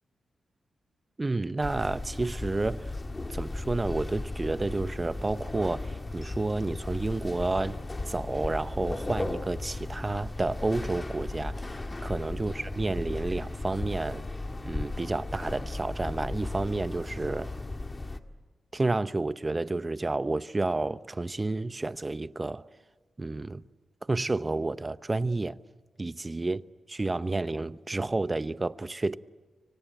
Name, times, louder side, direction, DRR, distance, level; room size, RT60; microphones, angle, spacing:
voice 1, 1.2-3.0 3.3-7.8 8.1-14.2 14.6-17.5 18.7-22.6 23.2-23.6 24.1-25.6 26.0-26.6 26.9-29.2, right 2 dB, 30° right, 0.9 m, -30 dB
sound 1, 1.6-18.2, left 2 dB, 30° left, 1.9 m, -36 dB
26.0 x 24.5 x 9.2 m
cardioid pair, 55°, 0 cm